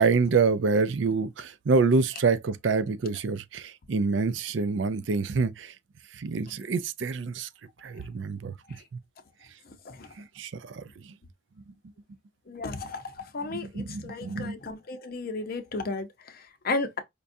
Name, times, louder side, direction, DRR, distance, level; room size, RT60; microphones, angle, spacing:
voice 1, 0.0-5.7 6.1-7.5 7.8-8.5 10.2-10.8 13.5-14.6, right 4 dB, 70° right, 0.5 m, -26 dB
voice 2, 9.7-10.1 12.5-17.0, left 3 dB, 50° left, 0.7 m, -34 dB
5.1 x 2.3 x 2.6 m
head